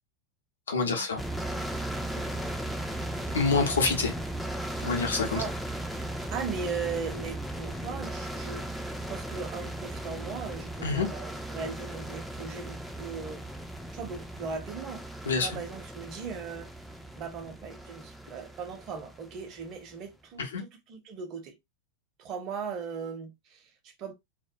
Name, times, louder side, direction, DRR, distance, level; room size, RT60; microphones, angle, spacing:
voice 1, 0.7-1.2 3.3-4.1 4.8-5.4 10.8-11.1 15.2-15.5 20.4-20.6, left 4 dB, 65° left, 0.7 m, -26 dB
sound 1, 1.2-19.8, right 1 dB, ahead, 0.4 m, -37 dB
voice 2, 6.3-8.7 9.1-13.4 13.9-15.0 15.4-16.7 17.2-21.5 22.2-24.1, right 5 dB, 35° right, 0.6 m, -38 dB
2.2 x 2.1 x 2.6 m
figure-of-eight pair, 90°, 0 cm